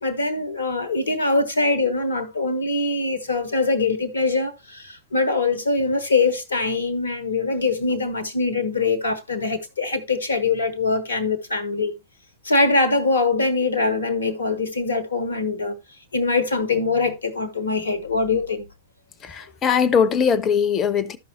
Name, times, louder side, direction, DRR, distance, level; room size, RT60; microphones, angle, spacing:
voice 1, 0.0-11.9 12.4-15.8 16.1-18.7, left 3 dB, 70° left, 1.1 m, -23 dB
voice 2, 19.2-21.2, left 6 dB, 25° left, 0.7 m, -20 dB
13.5 x 5.5 x 2.8 m
figure-of-eight pair, 95°, 0 cm